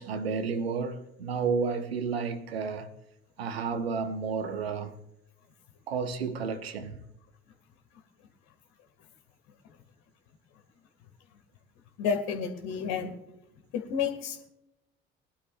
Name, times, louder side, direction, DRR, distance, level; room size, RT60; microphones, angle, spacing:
voice 1, 0.0-2.9 3.4-4.9 5.9-7.0, right 5 dB, 80° right, 1.1 m, -31 dB
voice 2, 12.0-13.1 13.7-14.5, left 6 dB, 60° left, 2.1 m, -30 dB
22.0 x 11.5 x 2.5 m
figure-of-eight pair, 55°, 30 cm